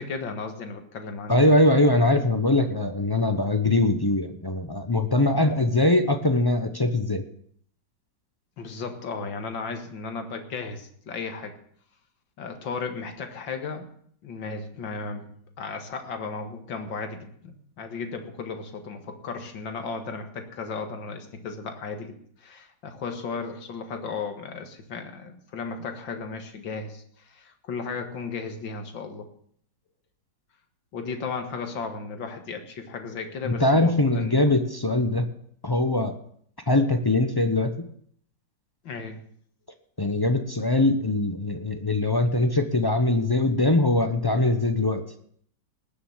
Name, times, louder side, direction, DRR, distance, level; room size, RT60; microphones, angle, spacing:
voice 1, 0.0-1.6 5.4-5.5 8.6-11.6 12.4-13.9 14.2-22.1 22.4-29.3 30.9-34.4 38.8-39.2, left 4 dB, 85° left, 6 dB, 2.4 m, -35 dB
voice 2, 1.3-7.2 33.5-35.3 35.6-36.1 36.7-37.9 40.0-45.0, left 2 dB, 35° left, 7 dB, 0.3 m, -22 dB
19.0 x 6.9 x 7.3 m, 0.63 s
omnidirectional pair, 2.0 m